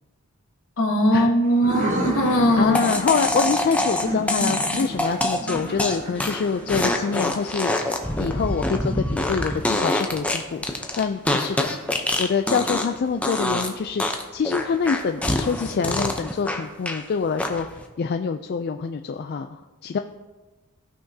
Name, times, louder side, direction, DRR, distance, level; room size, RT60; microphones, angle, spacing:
voice 1, 0.8-2.8, equal, 65° left, 2 dB, 1.3 m, -20 dB
sound 1, 1.4-9.0, right 1 dB, 35° right, 1.0 m, -32 dB
voice 2, 2.6-14.0 14.3-20.0, left 5 dB, 45° left, 7 dB, 0.3 m, -26 dB
sound 2, 2.7-13.0 13.2-13.7 14.0-17.0 17.4-17.8, left 1 dB, 5° left, 0.6 m, -25 dB
16.0 x 5.7 x 2.8 m, 1.2 s
head